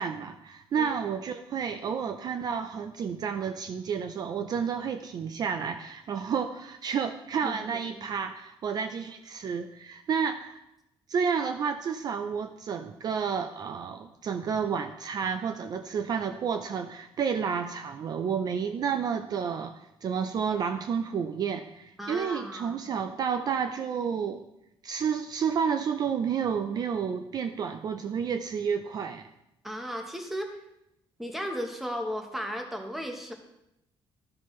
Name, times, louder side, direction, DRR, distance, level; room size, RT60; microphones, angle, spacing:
voice 1, 0.0-10.6 11.1-24.4 24.8-29.3, right 6 dB, 45° right, 8 dB, 0.4 m, -30 dB
voice 2, 7.4-8.1 22.0-22.8 29.6-30.6 31.2-33.3, equal, ahead, 3 dB, 1.0 m, -35 dB
12.5 x 5.9 x 3.1 m, 0.84 s
cardioid pair, 155°, 10 cm